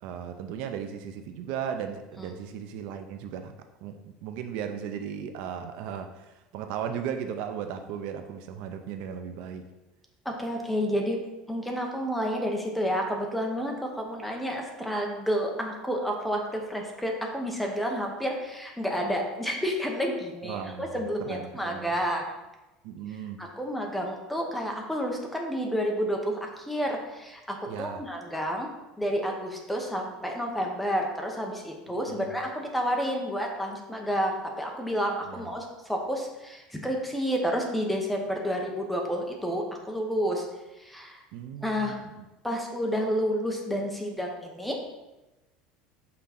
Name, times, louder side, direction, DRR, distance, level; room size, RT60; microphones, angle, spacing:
voice 1, 0.0-3.5 3.8-9.7 20.4-21.9 22.8-23.4 27.7-28.0 32.1-32.3 35.2-35.4 41.3-42.3, right 8 dB, 55° right, 7 dB, 0.5 m, -36 dB
voice 2, 10.2-11.2 11.5-22.2 23.4-28.7 29.0-40.4 40.8-41.2 41.6-42.0 42.4-44.8, equal, ahead, 1 dB, 0.7 m, -30 dB
5.8 x 3.7 x 5.7 m, 1.0 s
cardioid pair, 175°, 2 cm